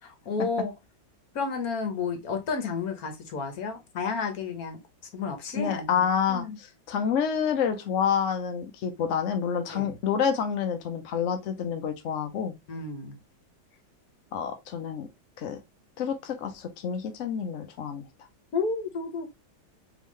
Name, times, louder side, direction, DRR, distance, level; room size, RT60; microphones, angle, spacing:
voice 1, 0.3-0.7 1.3-4.8 5.1-6.5 9.7-10.0 12.7-13.2 18.5-19.3, left 4 dB, 55° left, 1.3 m, -31 dB
voice 2, 5.5-12.5 14.3-15.1 15.4-15.6 16.0-18.1, left 7 dB, 70° left, 0.7 m, -28 dB
3.6 x 3.5 x 3.1 m
omnidirectional pair, 2.1 m